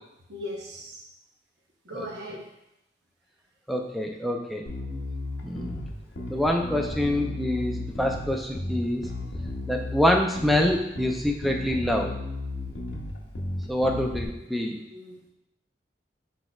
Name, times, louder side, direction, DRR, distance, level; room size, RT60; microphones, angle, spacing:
voice 1, 0.3-1.1 1.8-2.5 13.8-15.3, equal, 70° right, -1 dB, 0.9 m, -40 dB
voice 2, 3.7-4.7 5.4-5.8 6.3-9.0 9.7-12.2 13.7-14.8, left 1 dB, ahead, 1 dB, 0.3 m, -26 dB
Bass guitar, 4.7-14.3, left 2 dB, 85° left, 0.6 m, -34 dB
4.8 x 4.1 x 2.3 m, 0.86 s
head